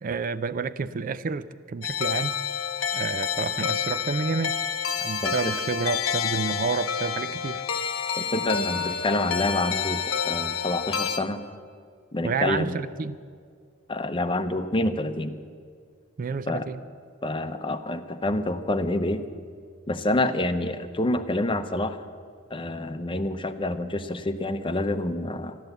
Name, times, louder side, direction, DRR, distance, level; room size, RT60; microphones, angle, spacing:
voice 1, 0.0-2.4 2.9-4.6 5.0-7.6 12.2-13.2 16.2-16.8, right 5 dB, 40° right, 0.4 m, -29 dB
sound 1, 1.8-11.2, left 7 dB, 70° left, 0.8 m, -28 dB
voice 2, 5.2-5.5 8.2-11.4 12.1-12.8 13.9-15.3 16.5-16.7 17.2-19.2 19.9-22.0 22.5-25.6, left 1 dB, 25° left, 0.7 m, -27 dB
13.5 x 12.0 x 8.0 m
head